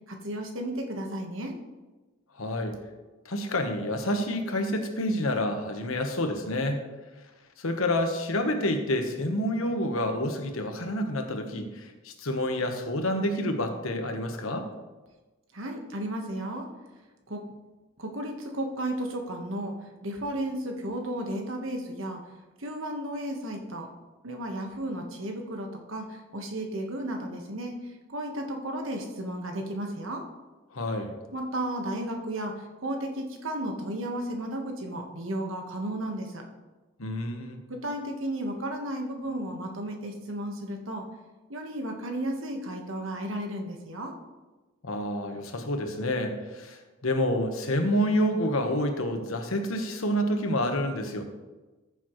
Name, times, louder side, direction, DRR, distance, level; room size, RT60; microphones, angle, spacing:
voice 1, 0.1-1.6 15.5-16.7 17.3-17.5 18.0-22.2 22.6-23.9 24.2-30.3 31.3-36.4 37.7-41.1 41.5-44.1, right 1 dB, 70° right, 3 dB, 1.4 m, -34 dB
voice 2, 2.4-2.8 3.2-6.8 7.6-14.7 30.7-31.1 37.0-37.6 44.8-51.2, left 1 dB, 80° left, 5 dB, 1.2 m, -28 dB
14.0 x 7.1 x 3.2 m, 1.2 s
head